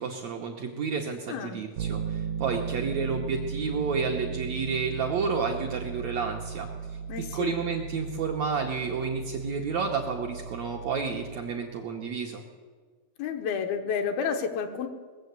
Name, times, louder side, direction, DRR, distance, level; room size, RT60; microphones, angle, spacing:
voice 1, 0.0-6.7 7.3-12.4, right 5 dB, 75° right, 1 dB, 1.6 m, -30 dB
voice 2, 1.3-1.6 7.1-7.5 13.2-14.9, left 6 dB, 80° left, 5 dB, 2.8 m, -30 dB
Bass guitar, 1.8-11.6, right 7 dB, 90° right, 2.5 m, -36 dB
19.5 x 7.5 x 8.0 m, 1.5 s
omnidirectional pair, 4.2 m